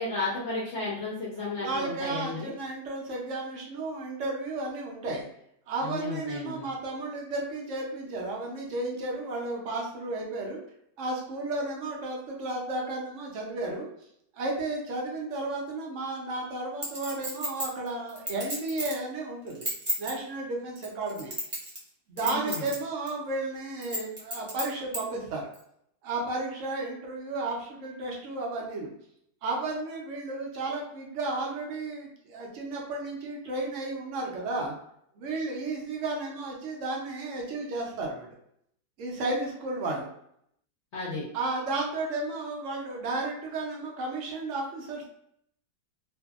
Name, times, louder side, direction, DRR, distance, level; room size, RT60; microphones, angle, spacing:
voice 1, 0.0-2.5 5.8-6.6 22.2-22.6 40.9-41.2, left 2 dB, 65° left, -6 dB, 0.7 m, -33 dB
voice 2, 1.4-5.3 5.7-10.6 11.0-13.9 14.3-19.7 20.0-21.3 22.1-25.5 26.0-28.9 29.4-34.7 35.1-38.4 39.0-40.1 41.3-45.1, right 2 dB, 75° right, -1 dB, 0.7 m, -33 dB
Chink clink, 16.8-19.0 19.5-20.1 20.8-21.9 22.2-22.8 23.1-23.2 23.8-25.0 25.5-25.6, right 1 dB, 40° right, 0.3 m, -32 dB
2.7 x 2.6 x 2.3 m, 0.73 s
omnidirectional pair, 2.0 m